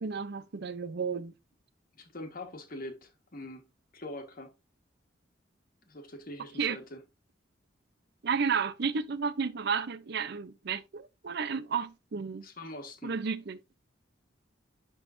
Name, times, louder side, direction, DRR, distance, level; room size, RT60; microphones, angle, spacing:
voice 1, 0.0-1.3 6.6-6.8 8.2-12.5 13.0-13.6, right 5 dB, 55° right, 0.6 m, -32 dB
voice 2, 1.9-4.5 5.9-7.0 12.4-13.1, left 1 dB, 45° left, 1.5 m, -43 dB
11.0 x 3.8 x 2.6 m
head